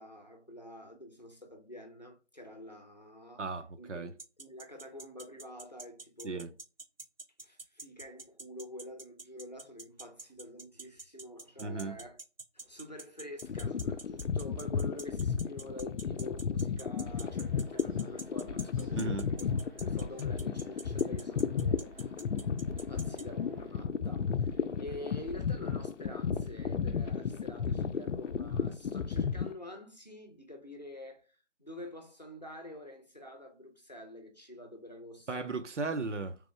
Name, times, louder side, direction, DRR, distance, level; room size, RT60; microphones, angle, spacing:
voice 1, 0.0-3.5 3.8-6.5 7.4-12.2 12.5-19.5 19.8-22.2 22.7-35.5, left 1 dB, 35° left, 0.7 m, -47 dB
voice 2, 3.4-4.1 6.2-6.5 11.6-11.9 18.9-19.3 35.3-36.4, right 3 dB, 80° right, 0.7 m, -35 dB
sound 1, 4.2-23.2, right 3 dB, 55° right, 0.5 m, -46 dB
sound 2, 13.4-29.5, left 6 dB, 85° left, 0.5 m, -33 dB
sound 3, 17.1-23.7, right 2 dB, 30° right, 2.2 m, -56 dB
3.5 x 3.3 x 3.1 m
figure-of-eight pair, 180°, 35 cm